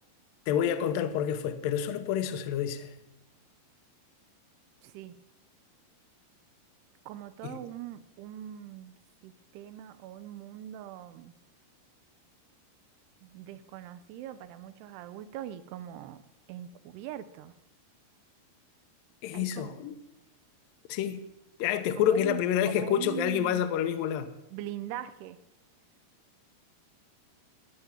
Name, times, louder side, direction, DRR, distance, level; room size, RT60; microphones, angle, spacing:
voice 1, 0.5-2.9 7.4-7.6 19.2-20.0 20.9-21.2 21.6-24.3, left 9 dB, 70° left, 2.3 m, -28 dB
voice 2, 4.8-5.1 7.1-8.9 9.2-11.3 13.2-16.2 16.5-17.6 19.3-19.7 22.1-23.7 24.5-25.4, right 11 dB, 80° right, 2.7 m, -41 dB
15.5 x 10.5 x 7.1 m
omnidirectional pair, 5.0 m